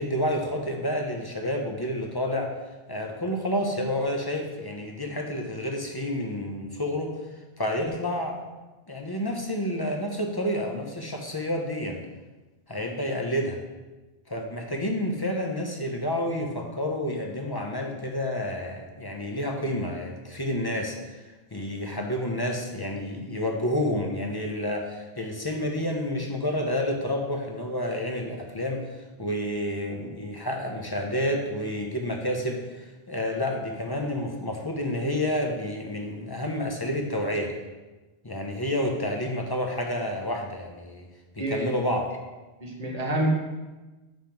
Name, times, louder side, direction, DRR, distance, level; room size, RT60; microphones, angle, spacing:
voice 1, 0.0-2.5 2.9-7.1 7.6-8.4 8.9-12.0 12.7-13.6 14.3-37.5 38.2-41.1 41.3-42.1, left 1 dB, 25° left, 2 dB, 0.7 m, -29 dB
voice 2, 42.6-43.3, right 1 dB, 40° right, -1 dB, 1.2 m, -27 dB
5.6 x 5.3 x 4.5 m, 1.2 s
omnidirectional pair, 1.0 m